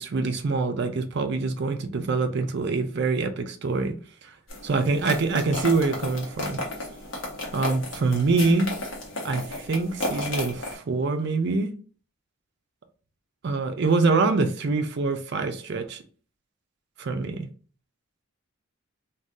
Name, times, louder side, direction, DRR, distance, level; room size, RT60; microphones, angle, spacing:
voice 1, 0.0-4.0 4.2-4.3 4.6-6.6 7.5-8.7 9.2-11.7 13.4-16.0 17.0-17.5, right 3 dB, 50° right, 0.4 m, -25 dB
sound 1, 4.5-10.7, left 2 dB, 60° left, 0.9 m, -33 dB
2.6 x 2.3 x 3.5 m
head